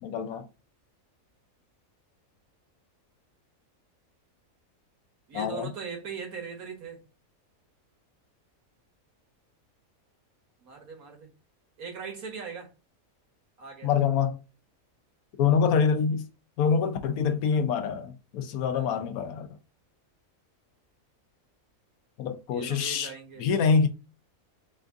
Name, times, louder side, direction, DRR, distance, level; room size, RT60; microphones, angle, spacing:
voice 1, 0.0-0.5 5.3-5.7 13.8-14.4 15.4-16.3 16.6-19.5 22.2-23.1 23.4-23.9, left 6 dB, 90° left, 1.1 m, -25 dB
voice 2, 5.3-7.0 10.6-11.3 11.8-12.7 13.6-13.9 18.7-19.2 22.5-23.7, right 5 dB, 85° right, 1.8 m, -40 dB
4.3 x 2.5 x 3.5 m
omnidirectional pair, 1.5 m